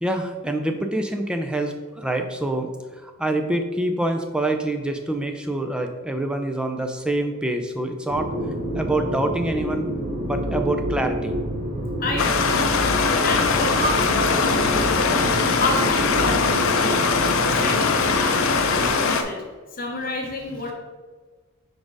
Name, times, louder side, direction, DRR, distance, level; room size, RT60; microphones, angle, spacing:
voice 1, 0.0-8.3 8.8-9.9 10.2-11.3, right 1 dB, 5° right, 5 dB, 0.4 m, -26 dB
sound 1, 8.1-18.9, equal, 30° right, 0.9 m, -28 dB
voice 2, 12.0-12.6 13.2-15.3 15.6-17.2 17.6-19.4 19.7-20.7, left 2 dB, 40° left, 1 dB, 0.9 m, -29 dB
Stream, 12.2-19.2, left 5 dB, 60° left, 0.5 m, -21 dB
4.9 x 4.3 x 4.7 m, 1.4 s
head